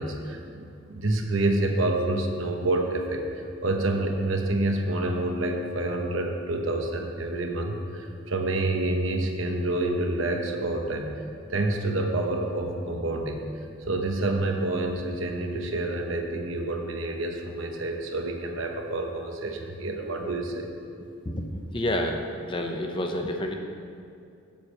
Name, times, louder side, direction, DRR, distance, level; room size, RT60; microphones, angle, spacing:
voice 1, 0.0-3.2 3.6-11.1 11.5-13.4 13.9-20.7, right 2 dB, 70° right, 3 dB, 1.0 m, -28 dB
voice 2, 21.2-23.5, left 1 dB, 25° left, 3 dB, 0.6 m, -29 dB
7.3 x 6.5 x 7.5 m, 2.5 s
head